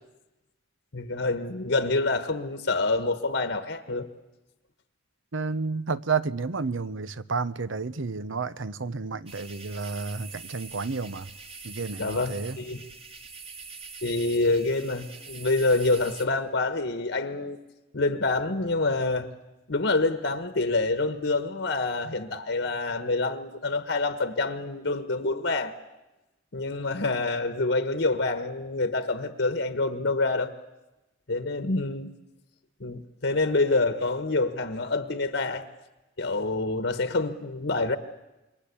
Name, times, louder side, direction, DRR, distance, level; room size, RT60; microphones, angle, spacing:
voice 1, 0.9-4.1 12.0-12.8 14.0-17.6 17.9-19.3 19.7-25.7 26.5-30.5 31.3-32.1 32.8-35.7 36.2-38.0, left 2 dB, 70° left, 1.4 m, -27 dB
voice 2, 5.3-11.3 11.6-12.6, right 4 dB, 90° right, 0.9 m, -31 dB
sound 1, 9.3-16.3, right 4 dB, 30° right, 1.6 m, -44 dB
27.5 x 22.0 x 8.5 m
head